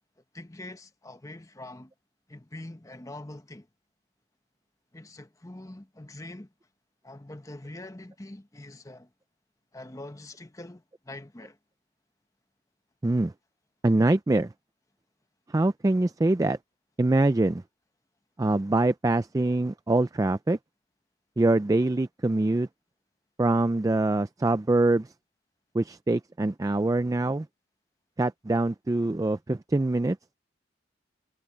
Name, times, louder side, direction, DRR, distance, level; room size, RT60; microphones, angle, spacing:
voice 1, 0.3-1.9 2.3-3.7 4.9-6.5 7.0-9.1 9.7-11.6, left 1 dB, 20° left, 1.0 m, -44 dB
voice 2, 13.8-14.5 15.5-16.6 17.0-17.6 18.4-20.6 21.4-22.7 23.4-25.1 25.7-27.5 28.2-30.2, right 2 dB, 20° right, 0.3 m, -24 dB
head